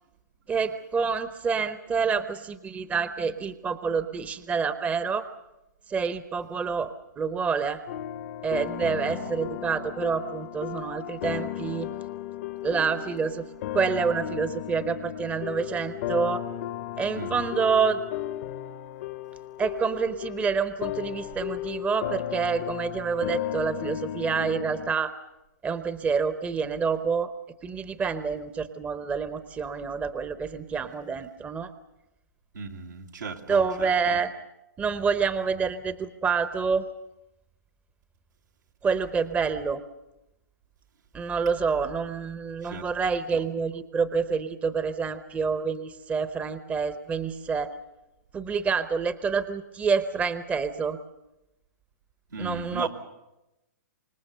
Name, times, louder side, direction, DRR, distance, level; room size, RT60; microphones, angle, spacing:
voice 1, 0.5-5.3 5.9-7.8 8.4-11.9 12.6-13.4 13.7-16.4 17.0-18.0 19.6-25.1 25.6-27.3 27.6-31.7 33.5-34.3 34.8-36.8 38.8-39.8 41.1-47.7 48.3-51.0 52.4-52.9, right 5 dB, 15° right, 12 dB, 0.8 m, -27 dB
sound 1, 7.9-24.9, left 12 dB, 50° left, 0.9 m, -35 dB
voice 2, 17.1-17.5 21.3-21.4 32.5-34.2 42.6-42.9 43.3-43.4 52.3-52.9, right 4 dB, 85° right, 2 dB, 2.6 m, -37 dB
25.5 x 21.0 x 6.7 m, 0.94 s
hypercardioid pair, 130°, 10 cm